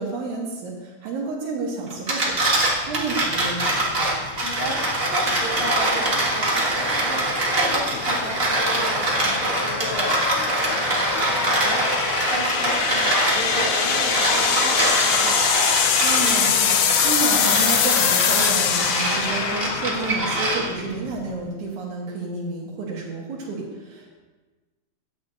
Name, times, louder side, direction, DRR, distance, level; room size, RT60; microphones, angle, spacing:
voice 1, 0.0-2.5 2.9-4.1 16.0-24.1, right 3 dB, 75° right, -2 dB, 2.6 m, -30 dB
sound 1, 1.9-20.9, right 1 dB, 30° right, 1.1 m, -24 dB
sound 2, 2.3-21.5, left 8 dB, 80° left, 2.0 m, -25 dB
voice 2, 4.4-15.4, equal, 45° left, -8 dB, 3.9 m, -34 dB
12.0 x 8.4 x 2.7 m, 1.2 s
omnidirectional pair, 3.5 m